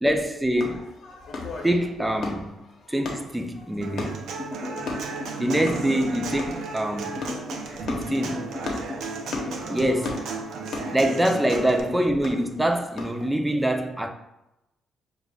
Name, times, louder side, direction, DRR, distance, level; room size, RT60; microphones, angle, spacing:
voice 1, 0.0-0.9 1.6-2.6 2.9-4.3 5.4-7.3 7.9-8.5 9.7-10.3 10.9-14.1, right 1 dB, 5° right, 0.5 m, -25 dB
sound 1, 0.6-13.3, left 3 dB, 65° left, 0.9 m, -37 dB
Human voice / Acoustic guitar, 3.8-11.8, right 4 dB, 75° right, 0.6 m, -35 dB
sound 2, 4.4-5.4 5.8-6.3 7.2-7.7 8.1-9.1 9.5-10.0 10.9-11.4, left 3 dB, 35° left, 0.8 m, -37 dB
6.7 x 2.4 x 2.3 m
cardioid pair, 90°, 0 cm